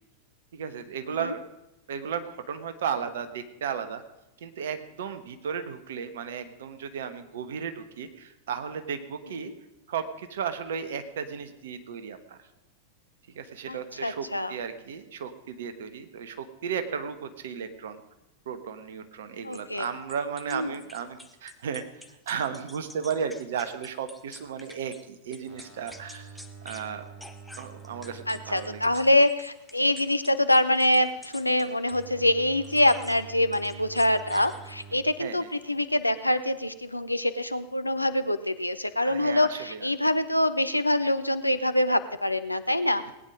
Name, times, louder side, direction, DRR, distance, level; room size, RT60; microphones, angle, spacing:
voice 1, 0.5-1.5 1.9-4.0 4.4-9.5 9.9-12.4 13.3-18.0 18.4-21.8 22.3-26.3 26.6-27.0 27.6-28.9 35.2-35.5 39.0-39.9, right 7 dB, 60° right, 9 dB, 1.3 m, -34 dB
voice 2, 13.7-14.5 19.4-19.9 20.5-20.7 28.3-43.1, left 1 dB, 85° left, 11 dB, 0.7 m, -25 dB
sound 1, 19.5-25.0 25.3-26.9 27.2-32.1 32.6-33.2 33.5-35.0, left 1 dB, ahead, 1.1 m, -49 dB
sound 2, 25.5-28.9 29.3-35.0 35.3-35.7, right 6 dB, 30° right, 4.0 m, -48 dB
18.5 x 9.5 x 5.1 m, 0.97 s
figure-of-eight pair, 90°, 0 cm